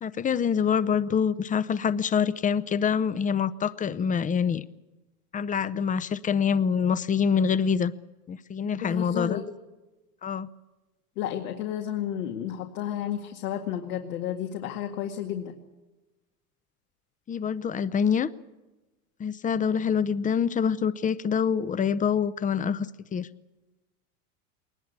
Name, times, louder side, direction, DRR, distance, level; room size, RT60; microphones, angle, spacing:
voice 1, 0.0-4.6 5.3-7.9 8.3-9.4 10.2-10.5 17.3-18.3 19.2-22.9 23.1-23.3, left 7 dB, 20° left, 17 dB, 0.7 m, -25 dB
voice 2, 8.8-9.4 11.2-15.5, left 10 dB, 75° left, 3 dB, 2.2 m, -32 dB
21.0 x 20.0 x 8.3 m, 1.1 s
supercardioid pair, 115°, 44 cm